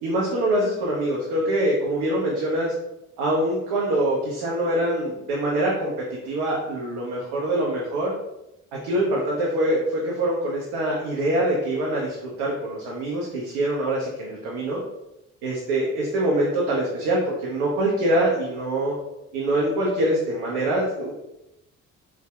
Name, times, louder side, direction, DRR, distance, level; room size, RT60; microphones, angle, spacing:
voice 1, 0.0-2.7 3.2-8.1 8.7-14.8 15.4-18.9 19.3-21.1, right 1 dB, 70° right, -4 dB, 0.8 m, -24 dB
4.0 x 2.4 x 2.3 m, 0.90 s
figure-of-eight pair, 45°, 41 cm